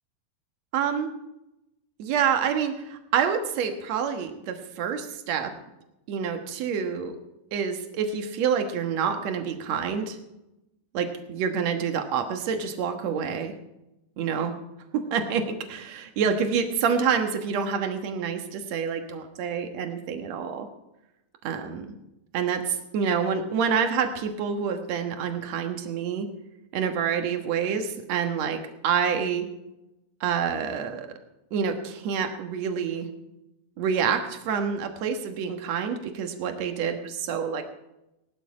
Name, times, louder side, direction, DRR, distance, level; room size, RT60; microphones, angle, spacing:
voice 1, 0.7-1.1 2.0-5.5 6.1-7.2 7.5-10.2 10.9-13.5 14.2-14.5 14.9-20.7 21.4-21.9 22.3-26.3 26.7-29.4 30.2-31.1 31.5-33.1 33.8-37.6, right 7 dB, 60° right, 6 dB, 1.8 m, -27 dB
18.5 x 12.0 x 4.8 m, 0.93 s
omnidirectional pair, 4.9 m